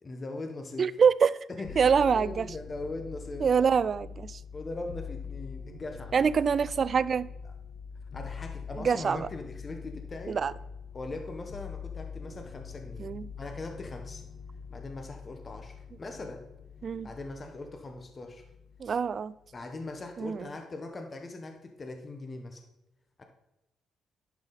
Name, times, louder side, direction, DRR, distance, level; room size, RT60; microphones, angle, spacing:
voice 1, 0.0-0.9 1.5-3.5 4.5-6.2 8.1-10.4 10.9-13.1 13.4-14.2 14.7-16.5 17.0-18.4 19.5-22.6 23.2-23.3, left 2 dB, 30° left, 1.1 m, -40 dB
voice 2, 0.8-1.4 1.8-2.5 3.4-4.4 6.1-7.3 8.8-9.3 10.3-10.5 13.0-13.3 16.8-17.1 18.8-19.3 20.2-20.5, right 6 dB, 45° right, 0.3 m, -25 dB
sound 1, 1.6-19.1 19.4-20.2, left 6 dB, 60° left, 1.1 m, -44 dB
11.0 x 4.8 x 4.1 m
cardioid pair, 90°, 0 cm